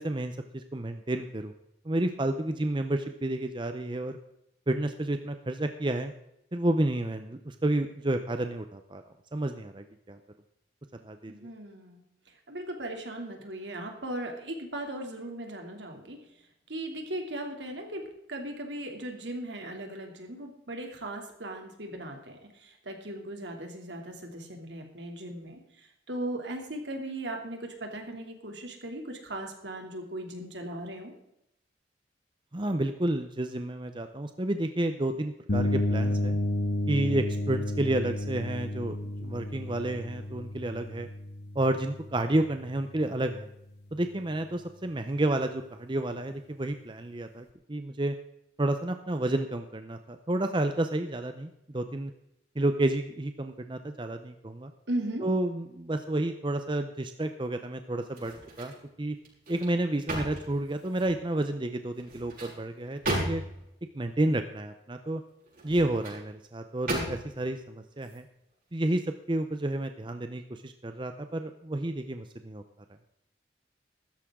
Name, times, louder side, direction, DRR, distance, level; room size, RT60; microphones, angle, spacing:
voice 1, 0.0-1.5 1.8-4.2 4.7-6.1 6.5-9.0 9.3-10.2 11.0-11.3 32.5-36.4 36.9-41.1 41.5-43.5 43.9-48.1 48.6-52.1 52.6-54.7 55.2-59.2 59.5-63.4 63.9-65.2 65.6-68.3 68.7-69.0 69.3-72.6, right 1 dB, 25° right, 8 dB, 0.7 m, -30 dB
voice 2, 11.3-12.0 12.5-16.2 16.7-31.1 54.9-55.2, right 1 dB, 75° right, 3 dB, 2.9 m, -38 dB
sound 1, 35.5-43.2, left 1 dB, 65° left, 1.4 m, -32 dB
sound 2, 58.1-58.8 59.2-61.2 61.9-63.7 65.5-66.2 66.9-67.5 68.0-68.2, right 1 dB, 50° right, 6.0 m, -35 dB
15.0 x 13.0 x 3.8 m, 0.80 s
head